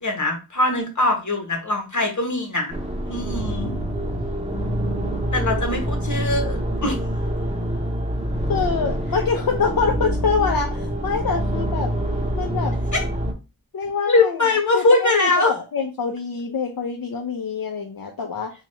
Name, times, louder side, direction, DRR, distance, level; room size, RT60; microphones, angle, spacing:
voice 1, 0.0-2.8 3.1-3.7 5.3-7.0 12.9-13.0 14.1-15.5, left 2 dB, 55° left, 3 dB, 1.1 m, -21 dB
sound 1, 2.7-13.3, equal, 20° right, 0.9 m, -26 dB
voice 2, 8.5-11.9 12.3-12.7 13.7-18.5, left 5 dB, 70° left, 2 dB, 0.5 m, -25 dB
2.9 x 2.4 x 4.2 m, 0.29 s
wide cardioid pair, 55°, 36 cm